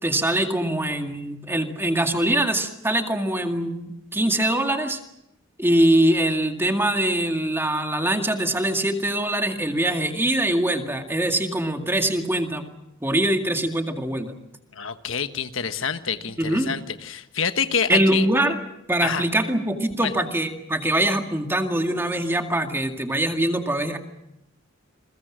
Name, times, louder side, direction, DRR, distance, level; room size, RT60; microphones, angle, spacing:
voice 1, 0.0-5.0 5.6-12.6 13.0-14.3 16.4-16.7 17.9-18.6 18.9-24.0, right 1 dB, 10° right, 4 dB, 2.1 m, -23 dB
voice 2, 14.7-18.3 19.0-19.2 20.0-20.1, left 6 dB, 75° left, 9 dB, 1.3 m, -27 dB
28.5 x 22.0 x 6.3 m, 0.85 s
head